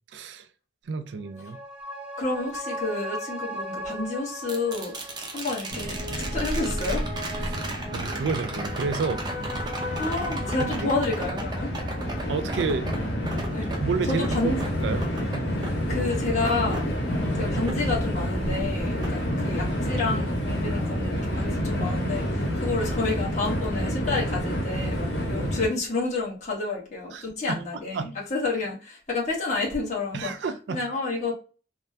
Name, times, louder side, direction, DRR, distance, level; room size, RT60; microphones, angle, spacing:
voice 1, 0.1-0.5 0.9-1.6 7.4-7.6 7.9-9.2 10.6-10.9 12.3-12.9 13.6-14.5 14.8-15.0 27.1-27.6 27.9-28.1 30.1-30.8, right 4 dB, 85° right, 0.4 m, -30 dB
sound 1, 1.2-14.0 14.4-14.5, left 1 dB, 5° right, 0.9 m, -38 dB
voice 2, 2.2-4.9 5.3-7.1 10.0-11.7 13.5-13.7 14.1-14.6 15.9-16.8 17.3-30.3 30.7-31.3, left 3 dB, 45° left, 1.2 m, -29 dB
sound 2, 4.5-18.6 19.0-20.1 22.3-22.4, right 2 dB, 25° right, 0.5 m, -38 dB
Train, 5.7-25.7, equal, 70° left, 0.9 m, -29 dB
3.4 x 2.1 x 2.6 m
head